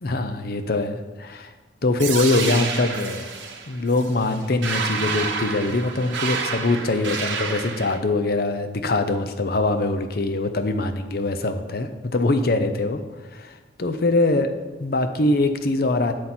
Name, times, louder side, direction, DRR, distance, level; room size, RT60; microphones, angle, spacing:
voice 1, 0.0-1.5 1.8-3.3 3.7-13.0 13.3-14.5 14.8-16.1, left 2 dB, 55° left, 9 dB, 0.7 m, -23 dB
sound 1, 2.0-8.0, right 5 dB, 90° right, 1.0 m, -29 dB
7.5 x 7.5 x 4.4 m, 1.3 s
head